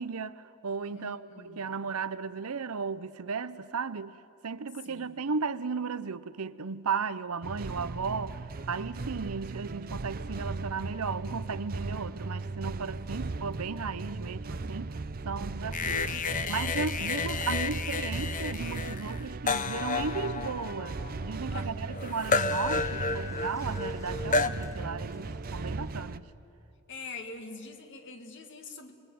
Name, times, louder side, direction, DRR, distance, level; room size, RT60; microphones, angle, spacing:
voice 1, 0.0-4.2 4.4-15.0 15.2-26.3, right 5 dB, 80° right, 0.8 m, -35 dB
voice 2, 0.9-1.7 4.8-5.2 21.5-21.9 26.9-29.0, left 4 dB, 55° left, 2.2 m, -44 dB
sound 1, 7.4-26.2, right 3 dB, 40° right, 0.6 m, -37 dB
sound 2, 10.5-25.9, equal, 15° left, 1.4 m, -53 dB
sound 3, 15.7-24.5, left 4 dB, 35° left, 0.8 m, -31 dB
28.0 x 21.5 x 9.5 m
head